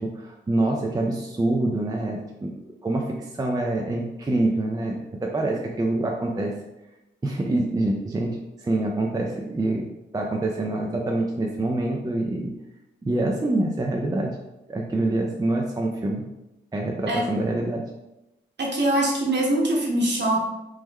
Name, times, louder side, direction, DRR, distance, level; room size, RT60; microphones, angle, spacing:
voice 1, 0.0-6.5 7.2-9.8 10.1-12.5 13.0-14.3 14.7-16.3 16.7-17.8, right 2 dB, 20° right, 0 dB, 0.4 m, -26 dB
voice 2, 18.6-20.4, right 1 dB, 60° right, -2 dB, 1.0 m, -23 dB
3.0 x 2.1 x 3.6 m, 0.93 s
cardioid pair, 60°, 20 cm